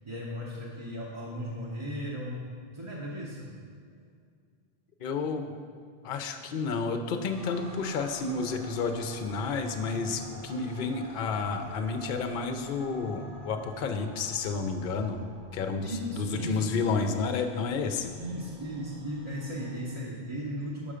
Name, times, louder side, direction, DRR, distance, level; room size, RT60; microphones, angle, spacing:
voice 1, 0.0-2.5 2.7-3.5 15.8-16.6 18.2-20.9, equal, 30° right, -6 dB, 0.9 m, -36 dB
voice 2, 5.0-5.5 6.0-15.2 15.5-18.1, left 4 dB, 60° left, 7 dB, 0.7 m, -31 dB
sound 1, 7.3-19.9, right 1 dB, 55° right, 1.4 m, -48 dB
6.6 x 5.5 x 4.9 m, 2.2 s
omnidirectional pair, 1.1 m